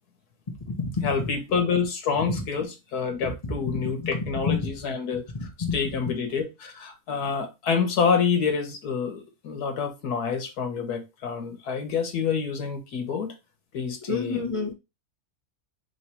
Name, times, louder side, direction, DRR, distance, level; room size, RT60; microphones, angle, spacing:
voice 1, 1.0-5.2 5.7-13.3 13.7-14.4, left 6 dB, 90° left, 1.5 m, -27 dB
voice 2, 5.3-5.7 14.1-14.7, left 5 dB, 25° left, 0.8 m, -28 dB
3.1 x 3.1 x 4.3 m
omnidirectional pair, 1.6 m